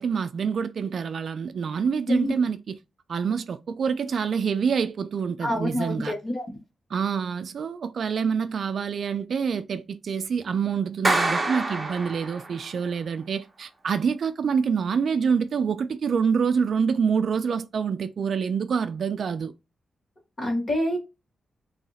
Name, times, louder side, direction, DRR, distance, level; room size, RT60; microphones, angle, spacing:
voice 1, 0.0-2.8 3.1-6.1 6.9-19.5, right 6 dB, 55° right, 0.3 m, -26 dB
voice 2, 5.4-6.4 20.4-21.0, left 1 dB, 30° left, 1.4 m, -26 dB
Clapping, 11.0-12.7, right 2 dB, 15° right, 0.6 m, -26 dB
3.2 x 2.8 x 3.9 m
wide cardioid pair, 170°, 0 cm